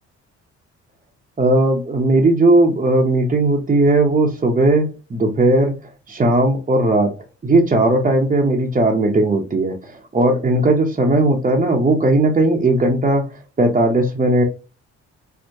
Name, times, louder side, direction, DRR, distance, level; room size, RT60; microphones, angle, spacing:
voice 1, 1.4-5.8 6.1-7.2 7.4-14.4, right 2 dB, 25° right, -1 dB, 0.8 m, -17 dB
4.5 x 2.1 x 2.7 m, 0.31 s
cardioid pair, 90°, 30 cm